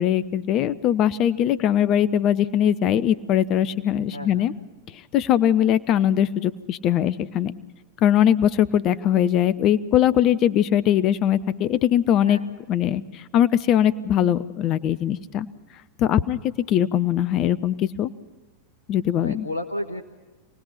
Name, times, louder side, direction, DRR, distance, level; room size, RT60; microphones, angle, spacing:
voice 1, 0.0-4.5 5.1-7.5 8.0-12.4 12.7-15.5 16.0-16.4 16.7-18.1 18.9-19.5, left 10 dB, 35° left, 16 dB, 0.8 m, -21 dB
voice 2, 4.1-4.5 12.2-12.4 19.2-20.0, left 1 dB, 80° left, 2 dB, 1.4 m, -32 dB
27.5 x 19.0 x 5.8 m, 1.2 s
figure-of-eight pair, 90°, 0 cm